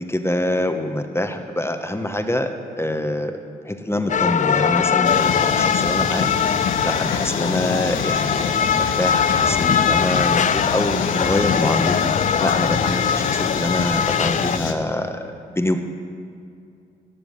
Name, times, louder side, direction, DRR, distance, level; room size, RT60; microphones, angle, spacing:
voice 1, 0.0-3.4 3.6-6.3 6.8-12.1 12.4-15.8, left 1 dB, 10° left, 6 dB, 1.3 m, -25 dB
sound 1, 4.1-14.6, left 7 dB, 40° left, 0.4 m, -21 dB
sound 2, 5.0-14.7, left 5 dB, 75° left, 1.0 m, -27 dB
14.5 x 6.9 x 7.7 m, 2.4 s
hypercardioid pair, 45°, 20 cm